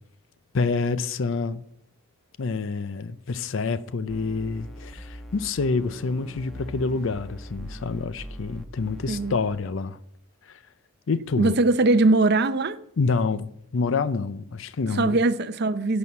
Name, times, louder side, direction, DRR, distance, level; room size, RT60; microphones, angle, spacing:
voice 1, 0.5-1.6 2.4-10.0 10.5-10.6 11.1-11.5 13.0-15.2, left 4 dB, 65° left, 0.5 m, -27 dB
sound 1, 4.1-9.4, equal, ahead, 1.0 m, -41 dB
voice 2, 11.4-12.8 14.9-16.0, right 2 dB, 55° right, 0.6 m, -21 dB
11.0 x 6.2 x 7.4 m
head